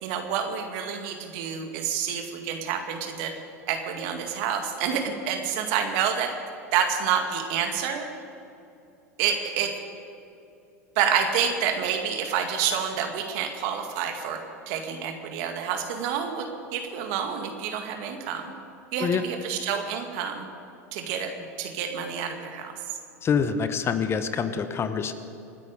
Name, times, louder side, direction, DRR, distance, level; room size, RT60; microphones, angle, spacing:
voice 1, 0.0-3.3 3.7-6.3 6.7-8.1 9.2-9.8 11.0-14.4 14.7-18.5 18.9-20.5 20.9-21.3 21.6-22.7, right 7 dB, 55° right, 5 dB, 2.1 m, -28 dB
voice 2, 23.2-25.1, left 6 dB, 30° left, 10 dB, 1.1 m, -26 dB
27.0 x 9.6 x 5.2 m, 2.8 s
hypercardioid pair, 85°, 9 cm